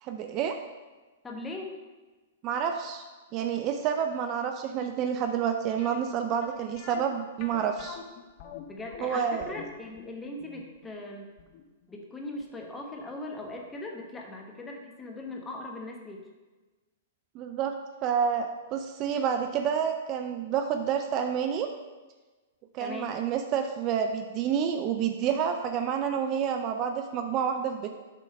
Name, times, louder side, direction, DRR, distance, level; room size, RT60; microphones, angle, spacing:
voice 1, 0.0-0.6 2.4-3.0 3.3-8.0 9.0-9.4 17.3-17.7 18.0-21.7 22.7-27.9, right 8 dB, 35° right, 5 dB, 0.5 m, -29 dB
voice 2, 1.2-1.7 8.7-11.3 11.9-16.3 22.8-23.2, left 2 dB, 15° left, 1 dB, 1.1 m, -39 dB
sound 1, 5.8-12.6 12.9-13.0 13.6-13.7 14.0-14.1, left 8 dB, 45° left, 0.6 m, -45 dB
6.5 x 3.7 x 5.2 m, 1.2 s
figure-of-eight pair, 110°, 0 cm